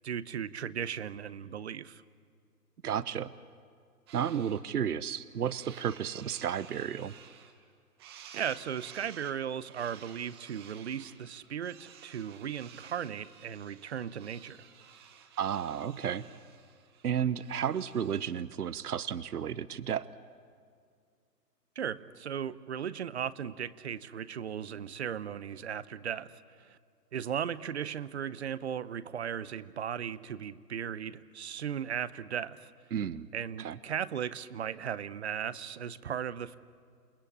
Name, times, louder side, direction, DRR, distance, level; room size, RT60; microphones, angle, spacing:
voice 1, 0.0-2.0 8.3-14.7 21.8-26.8 27.1-32.7 33.3-36.6, right 8 dB, 45° right, 0.8 m, -37 dB
voice 2, 2.8-3.3 4.1-7.1 15.4-16.3 17.0-20.1 32.9-33.3 33.6-33.8, right 8 dB, 70° right, 1.0 m, -32 dB
sound 1, 4.1-4.6 5.0-7.7 8.0-18.5, right 8 dB, 15° right, 0.9 m, -54 dB
28.5 x 20.5 x 8.6 m
hypercardioid pair, 155°, 48 cm